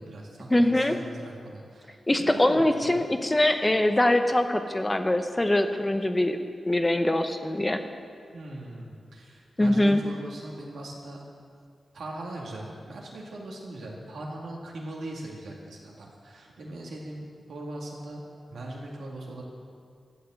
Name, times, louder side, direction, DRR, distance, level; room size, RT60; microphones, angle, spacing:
voice 1, 0.0-3.0 8.3-11.2 11.9-18.2 18.5-19.4, right 1 dB, 85° right, -2 dB, 2.4 m, -40 dB
voice 2, 0.5-1.0 2.1-6.4 6.7-7.8 9.6-10.0, left 1 dB, 15° left, 7 dB, 0.7 m, -23 dB
13.0 x 7.6 x 7.8 m, 2.3 s
wide cardioid pair, 115°, 0 cm